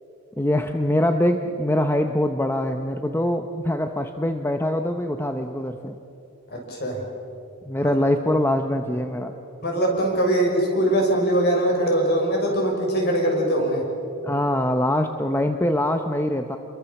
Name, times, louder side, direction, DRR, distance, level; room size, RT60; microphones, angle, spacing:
voice 1, 0.4-5.9 7.6-9.3 14.2-16.6, left 1 dB, 10° left, 6 dB, 0.8 m, -23 dB
voice 2, 6.5-7.0 7.8-7.9 9.6-13.8, right 1 dB, 45° left, 1 dB, 6.0 m, -22 dB
28.5 x 22.5 x 7.1 m, 2.9 s
head